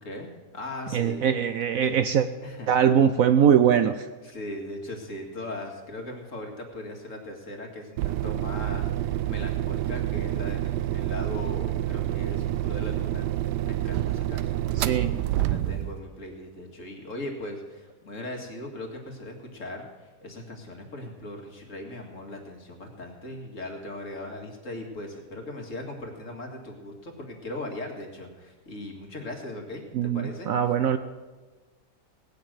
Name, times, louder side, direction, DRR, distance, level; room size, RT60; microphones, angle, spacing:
voice 1, 0.0-1.3 1.8-1.9 2.4-2.7 4.2-13.3 13.6-30.5, left 1 dB, 50° left, 1 dB, 2.4 m, -39 dB
voice 2, 0.9-2.3 2.7-4.1 14.8-15.2 29.9-31.0, right 8 dB, 65° right, 10 dB, 0.9 m, -22 dB
sound 1, 8.0-16.0, right 13 dB, 85° right, 1.2 m, -28 dB
18.0 x 6.7 x 9.1 m, 1.3 s
omnidirectional pair, 1.8 m